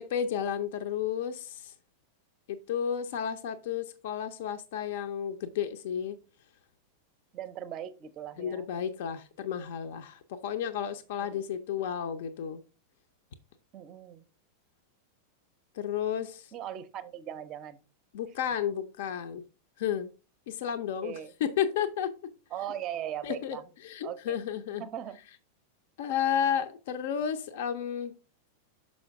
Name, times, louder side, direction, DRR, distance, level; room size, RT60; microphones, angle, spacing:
voice 1, 0.0-1.7 2.5-6.2 8.4-12.6 15.7-16.5 18.1-19.4 19.8-20.1 20.5-22.1 23.2-23.6 23.8-24.8 26.0-28.1, left 8 dB, 55° left, 0.5 m, -32 dB
voice 2, 7.3-8.7 11.3-11.4 13.7-14.2 16.5-17.8 21.0-21.3 22.5-23.6 24.0-24.4 24.8-25.2, right 10 dB, 35° right, 0.5 m, -39 dB
6.2 x 5.2 x 3.5 m
figure-of-eight pair, 90°, 0 cm